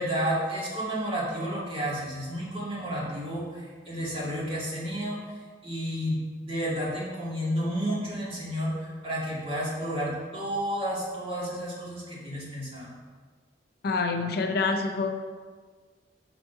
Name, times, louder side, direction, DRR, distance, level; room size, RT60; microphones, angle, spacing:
voice 1, 0.0-5.2 5.6-12.9, equal, 35° right, -6 dB, 1.9 m, -31 dB
voice 2, 13.8-15.2, left 4 dB, 60° left, 6 dB, 0.5 m, -27 dB
5.4 x 4.0 x 5.6 m, 1.5 s
head